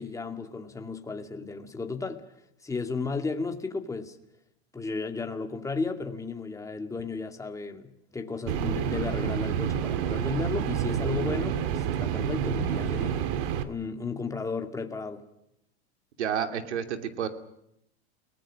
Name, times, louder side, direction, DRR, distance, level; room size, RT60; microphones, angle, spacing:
voice 1, 0.0-2.2 2.6-4.2 4.7-13.2 13.7-15.2, left 4 dB, 10° left, 2.4 m, -34 dB
sound 1, 8.5-13.6, right 9 dB, 55° right, 2.2 m, -28 dB
voice 2, 16.2-17.3, right 8 dB, 85° right, 2.8 m, -30 dB
30.0 x 19.5 x 6.5 m
hypercardioid pair, 115°, 33 cm